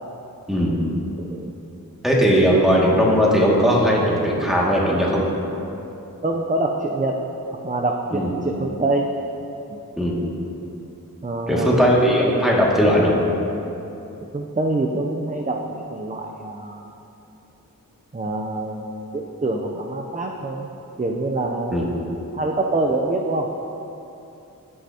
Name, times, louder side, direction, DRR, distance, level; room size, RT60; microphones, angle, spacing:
voice 1, 2.0-5.2 8.1-8.3 10.0-10.2 11.5-13.1 21.7-21.9, equal, ahead, -5 dB, 2.1 m, -18 dB
voice 2, 6.2-7.2 7.6-9.1 11.2-12.0 14.3-16.8 18.1-20.7 21.0-23.5, right 2 dB, 25° right, 1 dB, 0.6 m, -25 dB
15.0 x 6.0 x 2.9 m, 2.9 s
cardioid pair, 40°, 34 cm